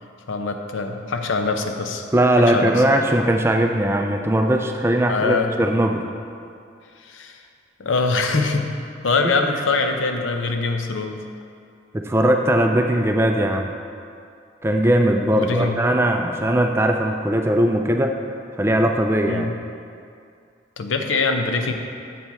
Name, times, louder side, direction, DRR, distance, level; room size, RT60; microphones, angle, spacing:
voice 1, 0.3-2.0 2.4-2.8 5.1-5.5 7.0-7.4 7.8-8.7 9.0-11.2 15.3-15.8 19.3-19.6 20.8-21.7, left 3 dB, 85° left, 5 dB, 0.6 m, -23 dB
voice 2, 2.1-6.0 9.2-9.4 11.9-13.7 14.6-18.1 18.6-19.5, right 1 dB, 15° right, 3 dB, 0.3 m, -19 dB
7.7 x 7.2 x 3.5 m, 2.4 s
head